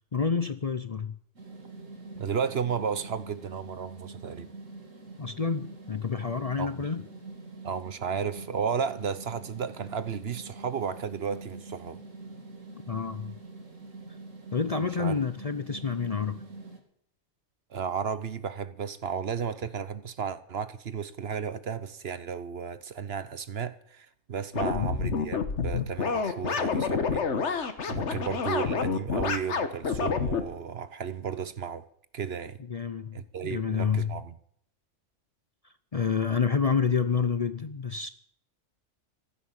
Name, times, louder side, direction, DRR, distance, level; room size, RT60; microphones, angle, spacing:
voice 1, 0.1-1.2 2.2-2.3 5.2-7.0 12.9-13.4 14.5-16.4 24.7-24.9 32.7-34.2 35.9-38.1, left 5 dB, 40° left, 0.7 m, -28 dB
sound 1, 1.4-16.8, right 3 dB, 85° right, 2.8 m, -45 dB
voice 2, 1.8-4.5 6.6-6.7 7.6-12.0 15.0-15.1 17.7-31.8 32.1-32.6 33.1-34.3, right 6 dB, 55° right, 1.1 m, -33 dB
sound 2, 24.5-30.4, left 5 dB, 65° left, 1.6 m, -28 dB
15.0 x 12.0 x 7.4 m
omnidirectional pair, 1.3 m